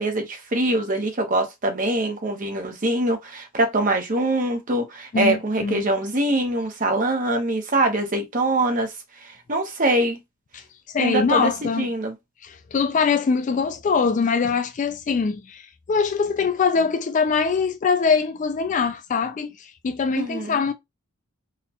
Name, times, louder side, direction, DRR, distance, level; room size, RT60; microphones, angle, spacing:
voice 1, 0.0-8.9 9.2-10.2 11.0-11.5 11.8-12.1 20.2-20.6, right 1 dB, 40° right, 0.9 m, -23 dB
voice 2, 5.1-5.8 10.5-10.6 10.9-11.9 12.4-20.7, left 5 dB, 35° left, 0.3 m, -23 dB
4.0 x 2.3 x 2.8 m
head